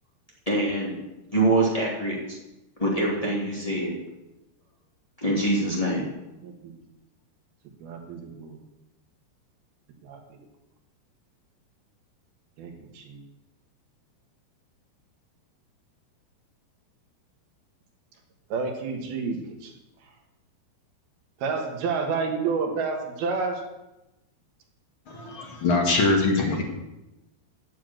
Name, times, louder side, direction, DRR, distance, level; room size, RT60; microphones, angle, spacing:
voice 1, 0.5-1.0 1.3-2.4 2.8-3.9 5.2-6.0, right 2 dB, 10° left, -4 dB, 1.7 m, -24 dB
voice 2, 7.8-8.6 10.0-10.2 12.6-13.2 18.5-19.7 21.4-23.6, right 4 dB, 65° right, 3 dB, 3.1 m, -30 dB
voice 3, 25.1-26.6, left 3 dB, 50° left, 1 dB, 1.6 m, -23 dB
9.4 x 7.0 x 8.8 m, 0.95 s
omnidirectional pair, 5.1 m